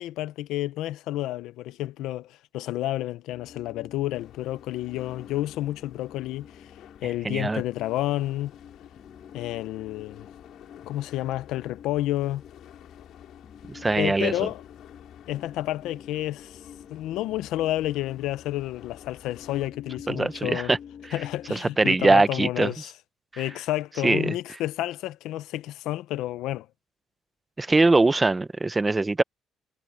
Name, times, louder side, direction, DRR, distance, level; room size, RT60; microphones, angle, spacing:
voice 1, 0.0-6.7 7.0-8.5 9.3-10.3 10.9-12.4 13.9-14.6 15.3-16.6 16.9-20.7 21.1-22.9 23.4-26.7, left 15 dB, 90° left, 0.8 m, -30 dB
sound 1, 3.3-21.6, left 8 dB, 40° left, 1.2 m, -48 dB
sound 2, 4.1-19.7, left 11 dB, 65° left, 3.4 m, -53 dB
voice 2, 7.2-7.6 13.7-14.5 20.1-20.8 21.5-22.7 23.3-23.4 24.0-24.3 27.6-29.2, right 3 dB, 15° right, 0.7 m, -22 dB
cardioid pair, 150°, 0 cm